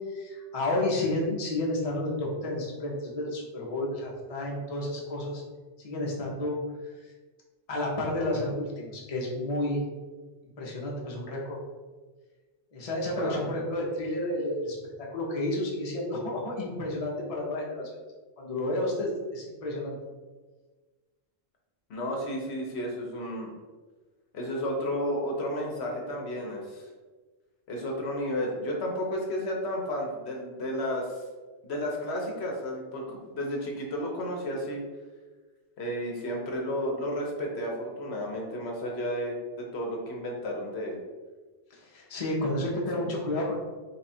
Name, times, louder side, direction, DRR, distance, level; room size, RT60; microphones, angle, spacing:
voice 1, 0.1-5.4 5.8-6.6 7.0-7.1 7.7-9.8 10.6-11.6 12.7-17.9 18.4-20.0 41.7-43.6, left 1 dB, 35° left, -3 dB, 0.7 m, -31 dB
voice 2, 13.1-13.6 21.9-23.5 24.3-26.9 27.7-31.2 31.6-34.8 35.8-41.0 43.0-43.1, equal, 70° left, -1 dB, 1.0 m, -32 dB
3.6 x 2.3 x 4.1 m, 1.3 s
omnidirectional pair, 1.2 m